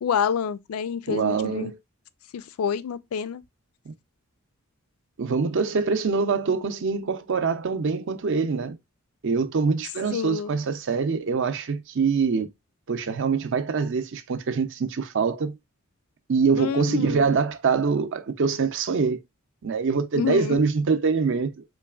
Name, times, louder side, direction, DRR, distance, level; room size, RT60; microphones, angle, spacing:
voice 1, 0.0-1.7 2.3-3.4 10.1-10.5 16.6-17.4 20.1-20.6, left 7 dB, 85° left, 0.4 m, -28 dB
voice 2, 1.1-1.8 3.9-4.0 5.2-8.8 9.2-12.5 12.9-15.6 16.3-19.2 19.6-21.6, right 5 dB, 60° right, 0.5 m, -24 dB
3.8 x 3.2 x 2.3 m
head